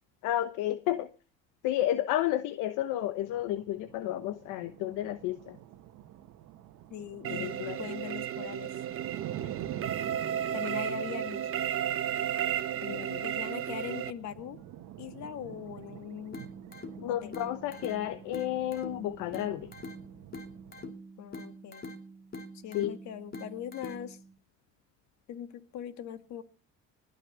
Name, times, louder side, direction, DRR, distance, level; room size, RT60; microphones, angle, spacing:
voice 1, 0.2-1.1 1.6-5.6 7.3-7.8 12.8-13.2 17.0-19.7 22.7-23.0, left 13 dB, 80° left, 11 dB, 1.1 m, -31 dB
sound 1, 3.2-20.9, right 12 dB, 70° right, 1.4 m, -47 dB
voice 2, 6.9-8.7 10.5-11.5 13.2-14.6 15.0-16.4 17.1-17.4 21.2-21.8 22.6-24.2 25.3-26.4, left 9 dB, 65° left, 11 dB, 1.9 m, -41 dB
sound 2, 7.2-14.1, right 10 dB, 45° right, 1.0 m, -33 dB
sound 3, 16.3-24.3, left 1 dB, 30° left, 2.7 m, -45 dB
19.5 x 6.7 x 7.9 m, 0.36 s
cardioid pair, 105°, 31 cm